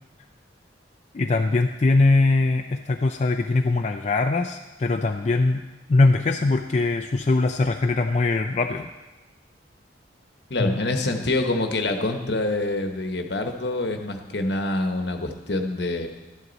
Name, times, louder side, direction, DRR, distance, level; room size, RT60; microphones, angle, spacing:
voice 1, 1.1-5.6 5.9-8.9 10.6-10.8, left 3 dB, 35° left, 4 dB, 0.4 m, -21 dB
voice 2, 10.5-16.1, left 2 dB, 65° left, 5 dB, 1.1 m, -26 dB
12.0 x 11.0 x 4.1 m, 1.1 s
head